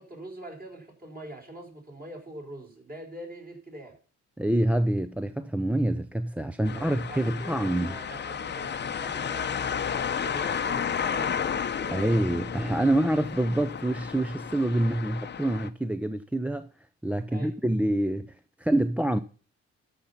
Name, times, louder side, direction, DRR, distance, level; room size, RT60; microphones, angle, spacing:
voice 1, 0.0-4.0 6.6-12.2 17.3-17.6, right 1 dB, 30° right, 4.6 m, -44 dB
voice 2, 4.4-7.9 11.9-16.7 17.0-18.3 18.6-19.2, right 1 dB, 5° right, 0.5 m, -26 dB
sound 1, 6.7-15.7, left 7 dB, 35° left, 0.8 m, -32 dB
13.0 x 5.8 x 5.7 m
cardioid pair, 90°, 30 cm